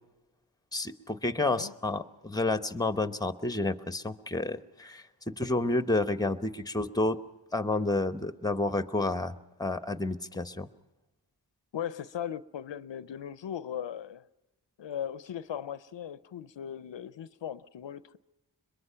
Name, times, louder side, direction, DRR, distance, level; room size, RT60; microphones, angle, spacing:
voice 1, 0.7-7.2 7.5-9.3 9.6-10.7, left 2 dB, 10° left, 11 dB, 0.9 m, -30 dB
voice 2, 11.7-14.3 14.8-18.2, left 9 dB, 80° left, 16 dB, 0.6 m, -38 dB
22.5 x 21.5 x 5.7 m, 1.0 s
cardioid pair, 40°, 44 cm